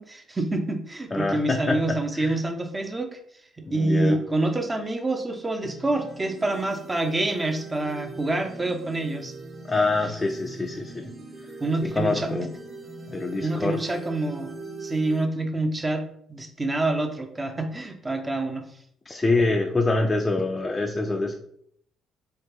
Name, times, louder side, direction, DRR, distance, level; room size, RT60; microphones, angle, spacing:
voice 1, 0.0-3.2 3.7-9.3 11.6-12.5 13.4-14.5 14.8-18.6, right 2 dB, 25° right, 5 dB, 0.7 m, -27 dB
voice 2, 1.1-1.8 2.2-2.3 3.7-4.2 9.7-11.1 11.8-12.5 13.1-13.8 19.1-21.3, left 3 dB, 25° left, 2 dB, 0.4 m, -25 dB
sound 1, 5.6-15.2, right 3 dB, 40° right, 1.2 m, -41 dB
4.3 x 2.5 x 3.2 m, 0.68 s
hypercardioid pair, 50°, 0 cm